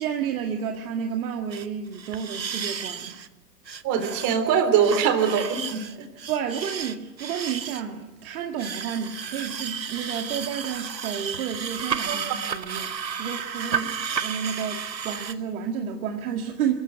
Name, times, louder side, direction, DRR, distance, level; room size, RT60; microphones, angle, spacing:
voice 1, 0.0-3.2 6.3-12.9 13.2-16.7, right 8 dB, 55° right, 3 dB, 2.0 m, -31 dB
sound 1, 1.5-1.7 1.9-3.3 3.7-4.3 4.7-7.8 8.6-15.3, right 6 dB, 85° right, 1.1 m, -32 dB
voice 2, 3.8-6.0 12.1-12.2, right 7 dB, 35° right, 8 dB, 3.6 m, -22 dB
26.5 x 14.5 x 8.9 m, 1.2 s
figure-of-eight pair, 100°, 49 cm